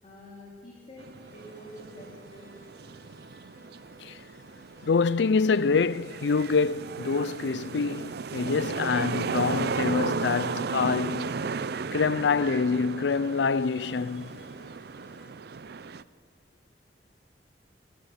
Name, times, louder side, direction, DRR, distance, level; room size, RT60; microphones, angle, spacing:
voice 1, 0.0-2.6, equal, 35° left, 3.9 m, -47 dB
sound 1, 1.0-16.0, right 4 dB, 65° right, 0.5 m, -35 dB
sound 2, 1.1-15.3, left 1 dB, 60° left, 4.1 m, -57 dB
voice 2, 4.8-11.3 11.9-14.4, left 5 dB, 75° left, 0.5 m, -26 dB
26.5 x 12.0 x 9.8 m
head